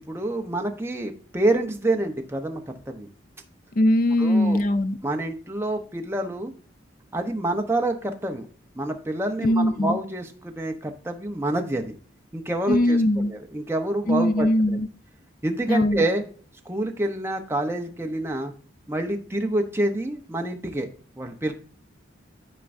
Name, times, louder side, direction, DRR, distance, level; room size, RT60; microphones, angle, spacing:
voice 1, 0.1-2.6 2.9-3.1 4.2-4.6 5.0-6.5 7.1-8.5 8.7-11.9 12.3-13.0 13.3-14.8 15.4-16.2 16.6-18.5 18.9-20.9 21.2-21.5, right 1 dB, 15° right, 0.8 m, -27 dB
voice 2, 3.8-5.0 9.4-10.0 12.7-13.3 14.1-14.9 15.7-16.0, left 1 dB, 45° left, 0.5 m, -21 dB
12.0 x 4.6 x 2.6 m
head